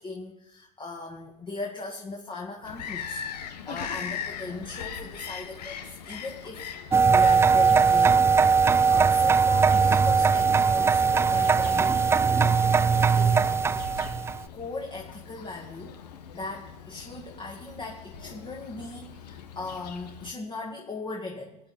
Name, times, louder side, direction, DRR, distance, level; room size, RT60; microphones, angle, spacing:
voice 1, 0.0-6.7 7.0-13.6 14.5-16.0 16.3-21.6, left 3 dB, 25° left, 0 dB, 2.1 m, -38 dB
Bird vocalization bird call bird song, 2.6-20.3, left 7 dB, 85° left, 1.6 m, -41 dB
sound 1, 6.9-14.4, right 5 dB, 10° right, 0.4 m, -20 dB
19.0 x 10.0 x 4.4 m, 0.85 s
hypercardioid pair, 110°, 20 cm